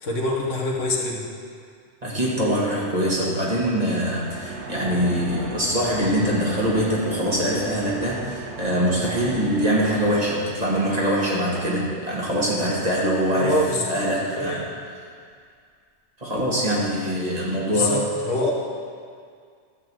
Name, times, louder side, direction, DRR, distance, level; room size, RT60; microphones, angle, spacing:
voice 1, 0.0-1.3 13.3-13.9 14.3-14.7 17.7-18.5, left 1 dB, 85° left, -2 dB, 1.7 m, -25 dB
voice 2, 2.0-13.6 13.9-14.6 16.2-18.0, equal, 35° right, -6 dB, 1.9 m, -23 dB
sound 1, 4.0-10.9, right 3 dB, 70° right, 1.2 m, -37 dB
11.5 x 4.1 x 7.7 m, 2.1 s
omnidirectional pair, 1.2 m